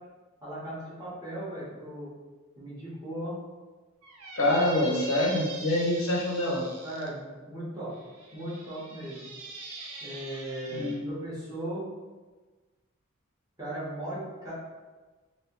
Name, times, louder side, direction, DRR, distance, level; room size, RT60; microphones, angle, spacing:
voice 1, 0.4-2.1 2.6-3.4 6.8-7.9 8.3-9.2 10.0-11.9 13.6-14.5, right 1 dB, 15° right, -9 dB, 1.2 m, -37 dB
Squeak, 4.0-7.1 7.9-11.0, right 3 dB, 90° right, 0.6 m, -43 dB
voice 2, 4.4-6.6 10.7-11.2, left 1 dB, 70° left, -2 dB, 0.7 m, -26 dB
3.2 x 2.7 x 3.0 m, 1.3 s
head